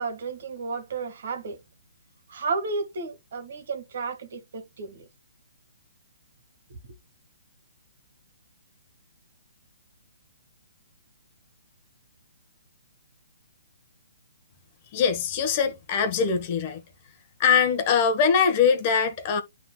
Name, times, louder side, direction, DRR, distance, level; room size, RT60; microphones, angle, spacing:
voice 1, 0.0-1.6 2.3-5.1, right 4 dB, 60° right, 1.9 m, -32 dB
voice 2, 14.9-16.8 17.4-19.4, left 6 dB, 35° left, 1.3 m, -22 dB
11.0 x 3.8 x 2.3 m
hypercardioid pair, 140°, 0 cm